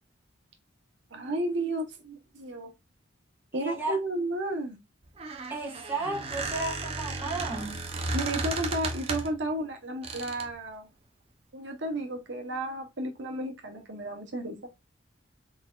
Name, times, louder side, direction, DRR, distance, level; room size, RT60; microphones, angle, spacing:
voice 1, 1.1-2.7 3.5-4.8 8.1-10.9 11.5-14.6, right 1 dB, 65° right, 0.9 m, -33 dB
voice 2, 3.5-4.0 5.5-7.9, right 2 dB, 10° right, 1.2 m, -34 dB
Squeak, 5.0-9.4 10.0-10.5, right 3 dB, 30° right, 0.7 m, -34 dB
4.2 x 4.0 x 2.3 m
head